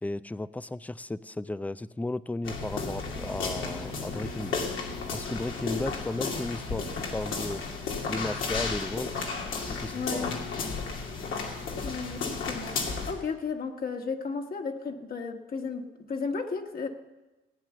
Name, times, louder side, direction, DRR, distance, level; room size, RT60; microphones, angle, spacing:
voice 1, 0.0-4.6 5.1-7.6 8.1-9.1 9.7-10.3, left 2 dB, 5° left, 16 dB, 0.4 m, -34 dB
sound 1, 2.4-13.1, left 4 dB, 80° left, 2.4 m, -33 dB
voice 2, 9.9-10.4 11.8-12.8 13.1-16.9, left 4 dB, 50° left, 3 dB, 1.6 m, -34 dB
16.5 x 9.1 x 6.8 m, 1.1 s
cardioid pair, 90°, 20 cm